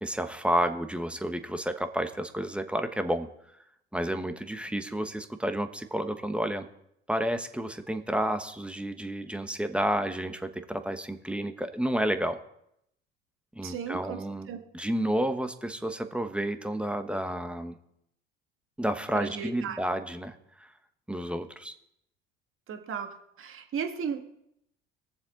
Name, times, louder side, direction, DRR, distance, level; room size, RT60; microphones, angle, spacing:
voice 1, 0.0-3.3 3.9-6.7 7.1-12.4 13.5-14.5 14.7-17.8 18.8-20.7 21.1-21.7, right 1 dB, 5° right, 8 dB, 1.2 m, -30 dB
voice 2, 13.6-14.2 14.5-14.6 19.1-19.8 22.7-24.2, right 7 dB, 45° right, 5 dB, 1.8 m, -35 dB
21.0 x 7.2 x 3.8 m, 0.76 s
hypercardioid pair, 65°, 29 cm